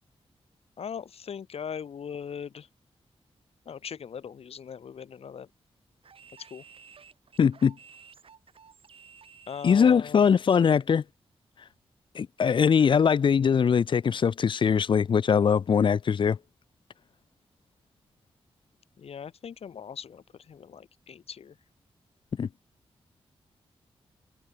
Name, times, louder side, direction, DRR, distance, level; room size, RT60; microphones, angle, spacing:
voice 1, 0.8-2.7 3.6-5.5 6.5-6.6 9.5-10.3 19.0-21.5, left 7 dB, 70° left, 1.6 m, -40 dB
sound 1, 6.0-10.9, right 6 dB, 60° right, 2.6 m, -54 dB
voice 2, 7.4-7.8 9.6-11.0 12.1-16.4 22.4-22.5, left 7 dB, 50° left, 0.5 m, -22 dB
wide cardioid pair, 115°, 11 cm